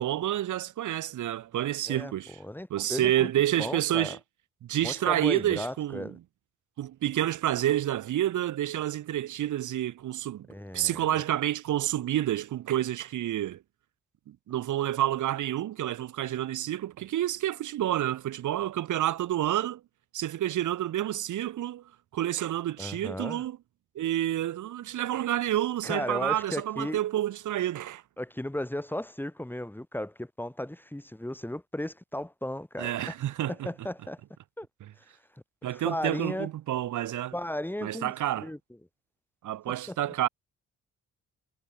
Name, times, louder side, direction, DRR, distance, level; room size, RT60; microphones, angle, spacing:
voice 1, 0.0-2.4 2.7-4.2 4.6-6.2 6.8-10.5 10.7-13.6 14.3-19.8 20.1-21.8 22.1-23.6 24.0-28.0 32.8-33.7 35.6-37.3 37.8-38.5 39.4-40.3, right 12 dB, 75° right, 7.3 m, -29 dB
voice 2, 2.4-3.3 3.6-4.2 4.8-6.2 10.5-11.2 22.8-23.4 25.8-27.0 28.2-33.1 33.5-34.2 34.6-34.7 35.7-36.5 37.3-38.6 39.7-40.0, left 1 dB, 5° left, 4.2 m, -35 dB
cardioid pair, 90°, 30 cm